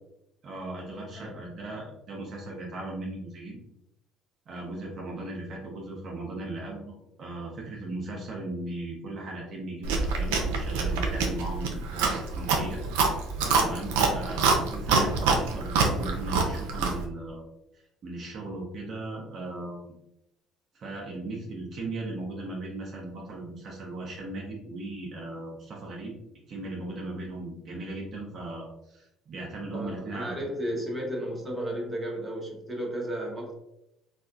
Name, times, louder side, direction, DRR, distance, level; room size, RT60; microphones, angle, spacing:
voice 1, 0.4-3.6 4.5-12.8 13.5-17.4 18.0-20.0 20.7-26.1 26.5-30.3, right 2 dB, 55° right, -2 dB, 0.8 m, -37 dB
Chewing mastication, 9.8-17.0, right 4 dB, 90° right, 0.5 m, -26 dB
voice 2, 13.4-13.8 29.7-33.5, equal, 15° right, -2 dB, 1.1 m, -34 dB
3.5 x 2.4 x 2.5 m, 0.84 s
supercardioid pair, 85°, 0 cm